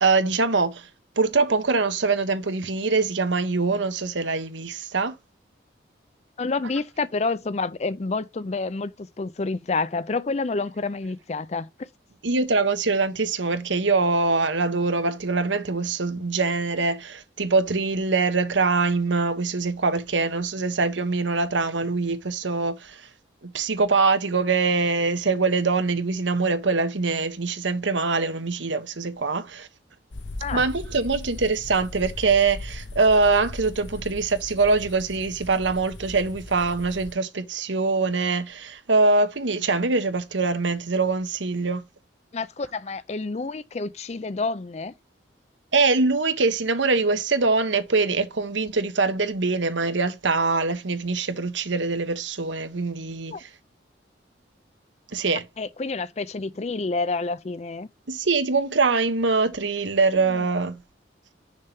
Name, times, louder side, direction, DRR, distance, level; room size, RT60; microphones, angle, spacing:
voice 1, 0.0-0.9 1.2-5.1 12.2-23.1 23.4-29.7 30.5-41.8 45.7-53.5 55.1-55.4 58.1-60.8, right 3 dB, 80° right, 1.1 m, -23 dB
voice 2, 6.4-11.9 30.4-30.6 42.3-44.9 53.3-53.4 55.6-57.9 60.1-60.5, left 3 dB, 35° left, 0.4 m, -29 dB
sound 1, 30.1-37.1, left 2 dB, 75° left, 0.8 m, -38 dB
6.5 x 3.5 x 5.7 m
head